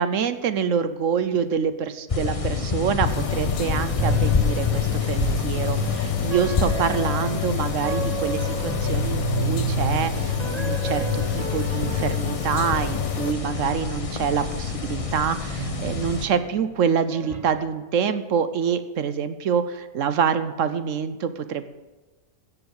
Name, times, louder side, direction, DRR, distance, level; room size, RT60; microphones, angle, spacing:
voice 1, 0.0-21.6, right 7 dB, 65° right, 11 dB, 1.0 m, -26 dB
sound 1, 2.1-16.3, left 5 dB, 25° left, 0.9 m, -28 dB
sound 2, 3.0-13.3, left 10 dB, 75° left, 1.1 m, -31 dB
sound 3, 4.0-14.4 14.8-16.7 17.1-17.4, equal, 30° right, 1.0 m, -30 dB
15.5 x 7.0 x 6.5 m, 1.2 s
omnidirectional pair, 1.5 m